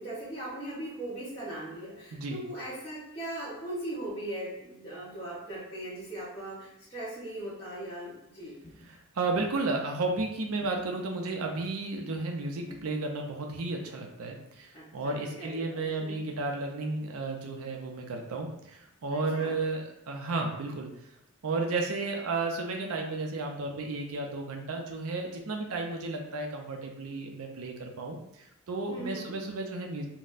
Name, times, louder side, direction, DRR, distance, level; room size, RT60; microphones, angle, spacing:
voice 1, 0.0-8.6 14.7-16.2 19.1-19.6 28.9-29.4, right 1 dB, 25° left, -13 dB, 0.9 m, -39 dB
sound 1, 8.4-9.0 10.5-11.1 12.7-13.1, left 2 dB, 45° left, 0.4 m, -52 dB
voice 2, 8.9-20.9 21.4-30.1, right 3 dB, 80° right, 2 dB, 0.5 m, -33 dB
4.0 x 2.1 x 2.5 m, 0.80 s
head